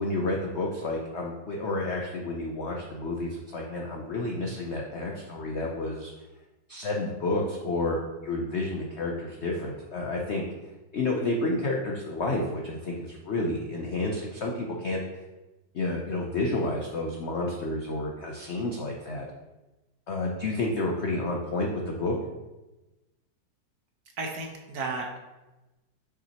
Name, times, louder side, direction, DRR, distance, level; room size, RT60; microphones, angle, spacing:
voice 1, 0.0-6.1 6.7-10.4 10.9-15.0 15.7-19.2 20.1-22.1, left 2 dB, 65° left, 0 dB, 0.6 m, -30 dB
voice 2, 24.2-25.2, right 3 dB, 60° right, 1 dB, 1.2 m, -33 dB
6.4 x 5.6 x 3.0 m, 1.1 s
omnidirectional pair, 2.0 m